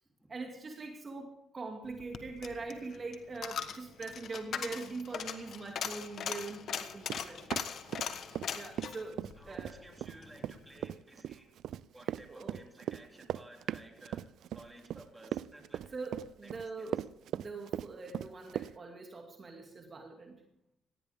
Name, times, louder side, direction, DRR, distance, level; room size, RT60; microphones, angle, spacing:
voice 1, 0.3-7.5 8.5-9.2 9.5-9.9 12.0-12.6 15.9-17.0 17.3-20.4, right 3 dB, 35° right, 2 dB, 2.5 m, -43 dB
Coin (dropping), 1.9-10.3 10.7-10.8, left 8 dB, 60° left, 1.4 m, -40 dB
Run, 7.1-8.5 8.8-18.7, right 11 dB, 75° right, 0.4 m, -38 dB
voice 2, 9.3-11.6 11.9-16.0 16.4-16.9, right 1 dB, 10° right, 2 dB, 3.4 m, -55 dB
18.5 x 15.5 x 3.6 m, 0.80 s
supercardioid pair, 75°, 0 cm